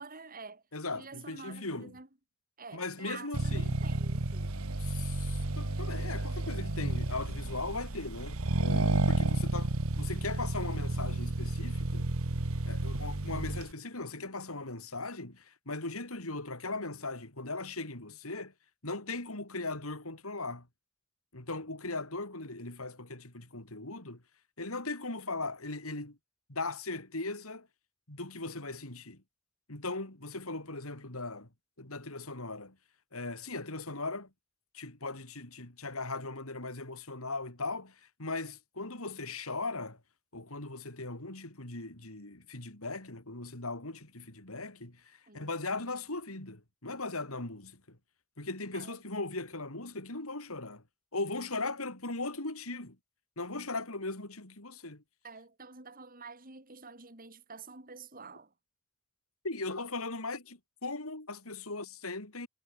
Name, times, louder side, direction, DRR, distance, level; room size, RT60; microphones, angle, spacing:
voice 1, 0.0-0.6 0.9-2.1 2.6-4.6 45.3-45.5 48.7-49.0 55.2-58.5, right 4 dB, 40° right, 4.6 m, -48 dB
voice 2, 0.7-1.9 2.7-3.8 4.8-12.1 12.6-18.5 18.8-20.7 21.3-24.2 24.6-26.2 26.5-27.7 28.1-29.2 29.7-31.5 31.8-32.8 33.1-34.3 34.7-40.0 40.3-48.0 48.4-50.8 51.1-53.0 53.4-55.0 59.4-62.5, left 3 dB, 80° left, 4.7 m, -39 dB
Accelerating revving vroom, 3.3-13.7, right 2 dB, 80° right, 1.5 m, -31 dB
head